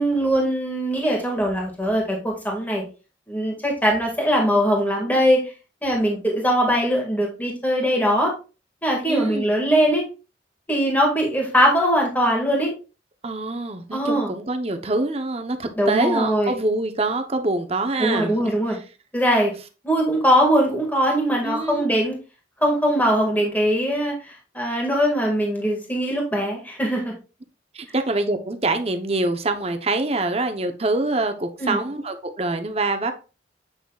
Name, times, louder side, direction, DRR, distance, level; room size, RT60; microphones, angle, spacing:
voice 1, 0.0-2.8 3.3-5.5 5.8-8.3 8.8-10.0 10.7-12.7 13.9-14.3 15.8-16.5 18.0-18.8 19.1-19.5 19.8-22.1 22.6-27.1 31.6-31.8, equal, 10° left, -1 dB, 1.8 m, -21 dB
voice 2, 9.1-9.5 13.2-18.8 21.4-21.8 27.7-33.1, right 2 dB, 30° right, 7 dB, 0.8 m, -25 dB
8.0 x 5.9 x 2.4 m, 0.32 s
head